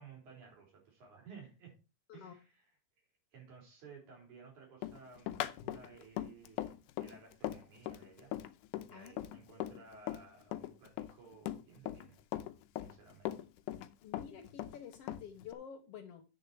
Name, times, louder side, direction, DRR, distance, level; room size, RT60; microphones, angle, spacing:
voice 1, 0.0-1.7 2.1-2.7 3.3-8.3 8.9-12.2 12.7-13.4, right 5 dB, 65° right, 0 dB, 5.7 m, -56 dB
Run, 4.8-10.3 10.5-12.1 12.3-13.9 14.1-15.5, left 13 dB, 85° left, 2.1 m, -40 dB
voice 2, 14.0-16.2, left 8 dB, 70° left, 8 dB, 1.5 m, -50 dB
8.7 x 6.7 x 4.4 m, 0.30 s
omnidirectional pair, 3.6 m